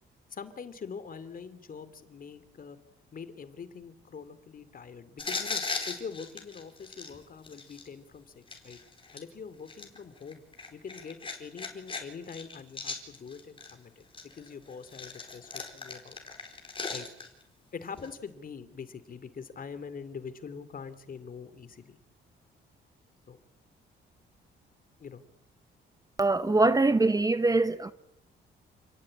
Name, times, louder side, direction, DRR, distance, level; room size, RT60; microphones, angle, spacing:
voice 1, 0.3-2.8 3.1-8.8 9.1-10.4 10.7-16.2 16.9-17.1 17.7-22.0 23.3-23.4 25.0-25.2, left 6 dB, 45° left, 2.7 m, -44 dB
sound 1, 5.2-7.9 8.5-9.2 9.7-12.0 12.3-13.7 14.1-17.4 18.0-18.1, left 4 dB, 25° left, 4.6 m, -38 dB
voice 2, 26.2-27.9, right 2 dB, 20° right, 1.0 m, -23 dB
28.5 x 17.5 x 8.8 m
cardioid pair, 90°, 20 cm